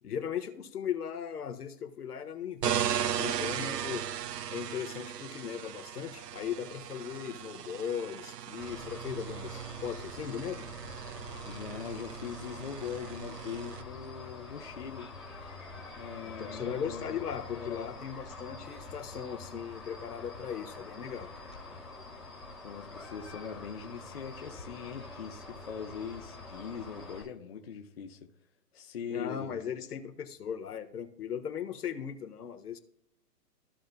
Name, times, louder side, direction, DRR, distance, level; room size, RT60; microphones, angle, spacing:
voice 1, 0.0-4.1 4.5-10.7 16.2-21.3 29.1-32.8, left 8 dB, 70° left, 1.5 m, -38 dB
sound 1, 2.6-13.8, right 9 dB, 75° right, 0.7 m, -37 dB
sound 2, 8.6-27.2, left 3 dB, ahead, 1.0 m, -46 dB
voice 2, 11.5-15.1 15.9-17.3 17.6-18.0 22.6-28.3 28.7-29.6, left 7 dB, 40° left, 0.9 m, -41 dB
15.0 x 5.3 x 2.2 m
hypercardioid pair, 165°, 48 cm